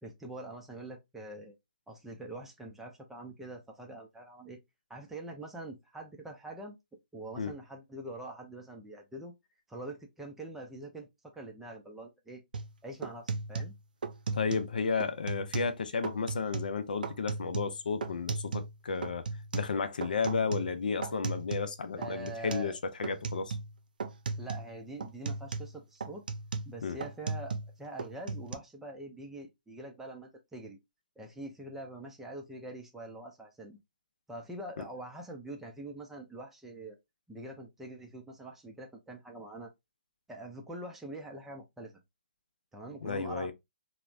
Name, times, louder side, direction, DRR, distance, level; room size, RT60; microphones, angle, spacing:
voice 1, 0.0-1.6 1.9-4.6 4.9-6.8 7.1-9.3 9.7-12.4 12.8-13.8 22.0-22.8 24.4-26.2 26.7-30.8 31.2-33.8 34.3-37.0 37.3-39.7 40.3-42.0 42.7-43.5, right 2 dB, 5° right, 0.5 m, -44 dB
sound 1, 12.5-12.7 13.0-14.7 15.0-15.8 16.0-16.7 17.0-18.8 19.0-21.7 22.0-22.7 23.0-23.7 24.0-24.7 25.0-27.7 28.0-28.5, right 4 dB, 70° right, 0.4 m, -36 dB
voice 2, 14.3-19.3 19.5-23.6 26.8-27.0 43.0-43.5, left 5 dB, 65° left, 0.4 m, -33 dB
3.0 x 2.1 x 2.3 m
figure-of-eight pair, 135°, 5 cm